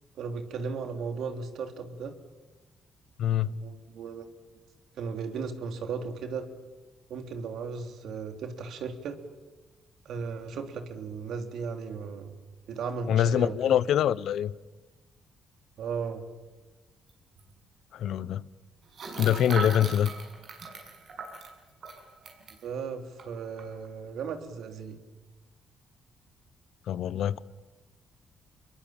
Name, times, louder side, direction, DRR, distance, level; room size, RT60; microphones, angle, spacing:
voice 1, 0.2-2.1 3.4-4.3 5.0-6.5 7.1-9.2 10.0-12.3 12.7-13.5 15.8-16.2 22.6-25.0, right 5 dB, 75° right, 3.2 m, -36 dB
voice 2, 3.2-3.6 13.1-14.5 17.9-18.4 19.2-20.1 26.9-27.4, left 10 dB, 75° left, 0.8 m, -24 dB
sound 1, 17.1-17.2 17.4-17.5 18.9-22.6 23.2-23.3 23.6-23.9, right 4 dB, 60° right, 7.0 m, -39 dB
27.0 x 22.0 x 8.9 m
cardioid pair, 90°, 0 cm